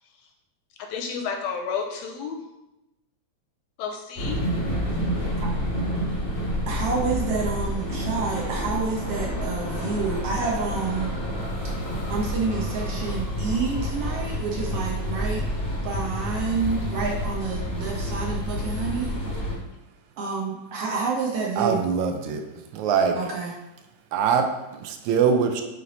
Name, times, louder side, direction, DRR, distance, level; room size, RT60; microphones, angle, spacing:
voice 1, 0.9-2.4 3.8-4.4, left 6 dB, 80° left, 3 dB, 1.7 m, -31 dB
sound 1, 4.2-19.5, equal, 50° left, 0.7 m, -29 dB
voice 2, 6.7-11.1 12.1-15.4 15.8-19.1 20.2-21.8 23.1-23.5, right 4 dB, 70° right, -2 dB, 1.6 m, -28 dB
voice 3, 21.6-22.4 22.7-23.2 24.1-25.6, right 6 dB, 85° right, 5 dB, 2.0 m, -23 dB
7.7 x 3.3 x 3.9 m, 0.95 s
omnidirectional pair, 3.3 m